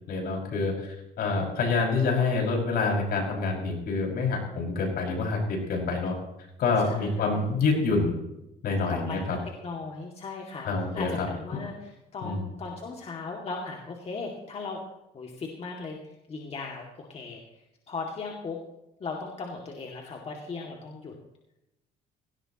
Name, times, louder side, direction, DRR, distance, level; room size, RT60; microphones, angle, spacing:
voice 1, 0.1-6.1 6.6-8.1 8.6-9.4 10.6-11.3 12.2-12.4, left 4 dB, 65° left, 0 dB, 6.0 m, -27 dB
voice 2, 6.8-7.5 8.9-9.2 9.6-14.8 15.1-17.4 17.9-18.6 19.0-21.1, left 4 dB, 40° left, 0 dB, 2.4 m, -37 dB
17.5 x 17.5 x 3.0 m, 0.88 s
cardioid pair, 110°, 17 cm